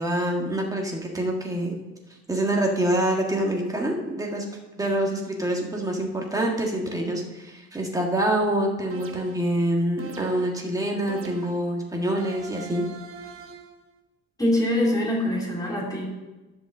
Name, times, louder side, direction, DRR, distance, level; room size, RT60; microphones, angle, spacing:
voice 1, 0.0-1.8 2.3-4.4 4.8-12.8, right 1 dB, 10° right, 0 dB, 1.6 m, -26 dB
sound 1, 8.9-9.5 10.0-10.6 11.1-11.7 12.2-13.8, right 6 dB, 45° right, 1.1 m, -41 dB
voice 2, 14.4-16.0, left 1 dB, 10° left, -4 dB, 3.0 m, -24 dB
11.0 x 5.4 x 7.2 m, 1.1 s
cardioid pair, 145°, 30 cm